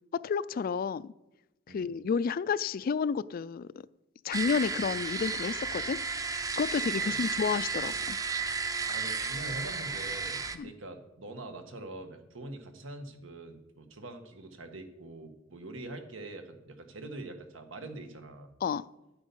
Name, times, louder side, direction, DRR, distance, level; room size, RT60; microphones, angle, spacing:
voice 1, 0.2-1.1 1.7-3.7 4.2-6.0 6.6-8.2 10.5-10.7 18.6-18.9, left 6 dB, 50° left, 19 dB, 0.3 m, -31 dB
sound 1, 4.3-10.6, right 4 dB, 20° right, 0.6 m, -33 dB
voice 2, 8.9-18.5, right 2 dB, 90° right, 6 dB, 1.5 m, -44 dB
11.0 x 8.8 x 5.4 m, 0.96 s
head